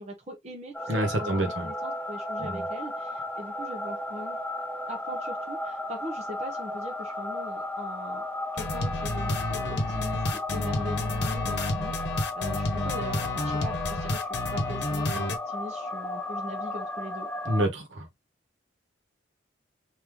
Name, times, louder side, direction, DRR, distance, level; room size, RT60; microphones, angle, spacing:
voice 1, 0.0-4.4 4.9-8.2 8.5-17.3, equal, 35° right, 0.9 m, -40 dB
sound 1, 0.7-17.7, left 2 dB, 10° left, 0.4 m, -34 dB
voice 2, 0.9-1.6 2.4-2.6 17.4-18.1, right 1 dB, 70° right, 1.2 m, -27 dB
sound 2, 8.6-15.4, left 1 dB, 60° left, 1.0 m, -30 dB
3.3 x 2.7 x 3.5 m
head